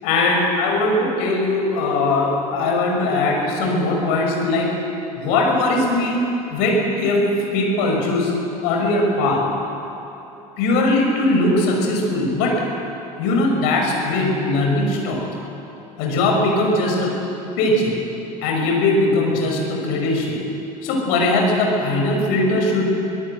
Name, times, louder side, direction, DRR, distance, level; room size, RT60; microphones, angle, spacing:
voice 1, 0.0-4.7 5.2-6.2 6.5-8.3 8.6-9.4 10.6-12.6 13.2-15.2 16.0-17.1 17.6-17.9 18.4-20.4 20.8-23.0, left 2 dB, 60° left, 0 dB, 6.2 m, -20 dB
25.0 x 17.5 x 8.0 m, 3.0 s
figure-of-eight pair, 70°, 20 cm